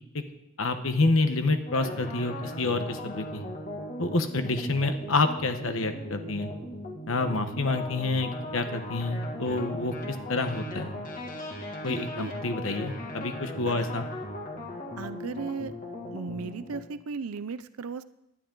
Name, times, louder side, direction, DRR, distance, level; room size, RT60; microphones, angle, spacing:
voice 1, 0.6-3.4 4.0-6.5 7.1-10.9 11.8-14.1, left 2 dB, 70° left, 7 dB, 1.1 m, -28 dB
sound 1, 1.7-16.8, left 1 dB, 40° left, 2.2 m, -38 dB
voice 2, 11.9-12.3 13.7-13.8 15.0-15.7 16.1-18.0, right 5 dB, 90° right, 14 dB, 0.5 m, -36 dB
19.5 x 11.5 x 3.9 m, 0.84 s
head